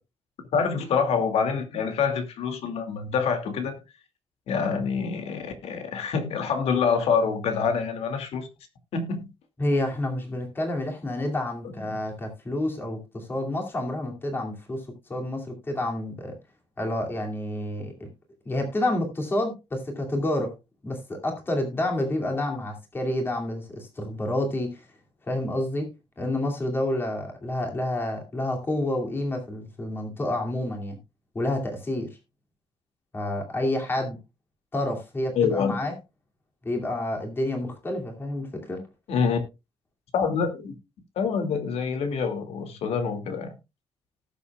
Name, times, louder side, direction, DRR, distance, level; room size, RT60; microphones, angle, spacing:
voice 1, 0.5-3.7 4.5-8.5 8.9-9.3 11.9-12.0 35.4-35.8 39.1-39.4 40.1-40.7 41.2-43.5, left 6 dB, 75° left, 2.3 m, -26 dB
voice 2, 9.6-16.3 16.8-17.9 18.5-20.5 20.8-24.8 25.3-25.9 26.2-31.0 31.3-32.1 33.1-34.2 34.7-35.9 36.6-38.8, left 1 dB, 20° left, 2.5 m, -29 dB
18.5 x 7.1 x 2.3 m
wide cardioid pair, 175°, 10 cm